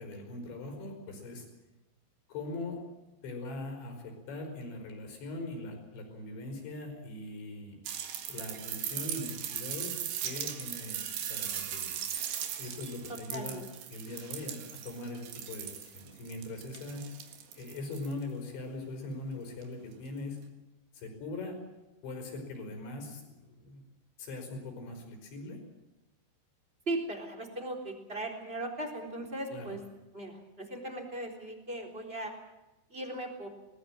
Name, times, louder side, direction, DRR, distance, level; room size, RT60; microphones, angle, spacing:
voice 1, 0.0-1.5 2.3-2.8 3.2-7.8 8.3-11.9 12.6-13.6 13.9-17.1 17.6-20.4 20.9-21.6 22.0-23.8 24.2-25.6 29.5-29.7, left 2 dB, 70° left, 4 dB, 7.4 m, -41 dB
sound 1, 7.9-18.2 19.6-19.7, right 10 dB, 70° right, 3.7 m, -38 dB
voice 2, 13.1-13.6 26.9-29.8 30.1-32.3 32.9-33.5, right 1 dB, 15° right, 1 dB, 3.3 m, -38 dB
22.5 x 20.0 x 7.6 m, 1.0 s
omnidirectional pair, 5.4 m